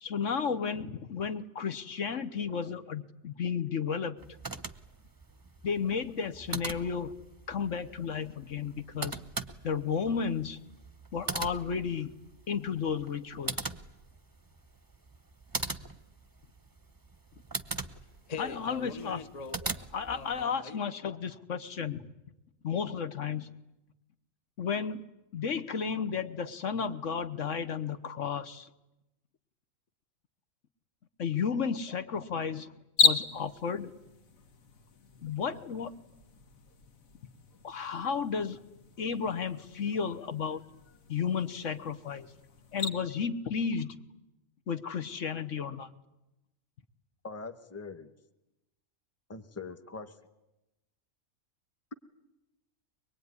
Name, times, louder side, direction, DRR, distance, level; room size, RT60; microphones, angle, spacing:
voice 1, 0.0-4.2 5.6-7.1 7.5-9.2 9.6-10.6 11.1-12.1 12.5-13.7 18.4-19.2 19.9-22.0 22.6-23.5 24.6-25.0 25.3-28.7 31.2-32.7 33.0-33.9 35.2-35.9 37.6-38.6 39.0-40.6 41.1-42.3 42.7-43.9 44.7-45.9, left 6 dB, 65° left, 1.4 m, -33 dB
sound 1, 4.2-20.4, right 3 dB, 20° right, 0.8 m, -41 dB
voice 2, 17.9-19.8 20.1-20.8, left 5 dB, 30° left, 1.1 m, -43 dB
sound 2, 33.0-42.9, left 5 dB, 85° left, 1.9 m, -35 dB
voice 3, 47.2-48.1 49.3-50.1, left 4 dB, 10° left, 1.2 m, -42 dB
23.5 x 22.0 x 9.6 m
omnidirectional pair, 1.4 m